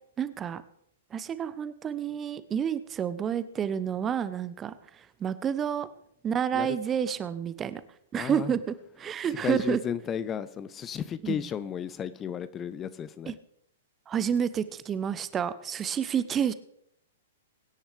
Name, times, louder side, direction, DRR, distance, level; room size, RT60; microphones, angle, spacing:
voice 1, 0.2-0.6 1.1-5.9 6.2-7.8 8.1-9.8 11.2-11.4 13.3-13.4 14.1-16.5, right 8 dB, 20° right, 14 dB, 0.8 m, -29 dB
voice 2, 8.2-8.5 9.3-13.3, left 8 dB, 20° left, 15 dB, 0.6 m, -34 dB
23.0 x 10.0 x 3.4 m, 0.71 s
figure-of-eight pair, 110°, 0 cm